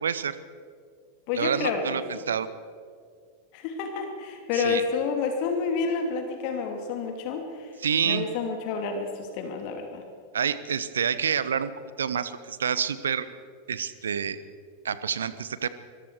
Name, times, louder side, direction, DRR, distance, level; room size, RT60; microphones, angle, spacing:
voice 1, 0.0-0.4 1.3-2.5 4.5-4.8 7.8-8.3 10.3-11.7 12.0-13.3 13.7-14.4 14.8-15.7, right 7 dB, 65° right, 15 dB, 1.0 m, -28 dB
voice 2, 1.3-2.2 3.5-7.7 8.1-10.0, left 5 dB, 45° left, 4 dB, 2.7 m, -29 dB
25.0 x 22.5 x 4.7 m, 2.1 s
figure-of-eight pair, 90°, 0 cm